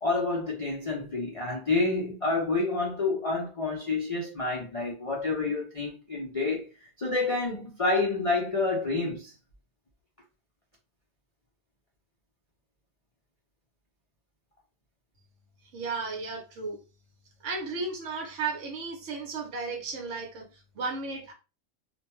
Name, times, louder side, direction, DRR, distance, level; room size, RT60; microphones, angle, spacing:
voice 1, 0.0-6.7 7.0-9.3, left 3 dB, 65° left, 0.3 m, -28 dB
voice 2, 15.7-16.8 17.4-21.3, right 4 dB, 60° right, 1.0 m, -34 dB
2.5 x 2.2 x 3.0 m
omnidirectional pair, 1.5 m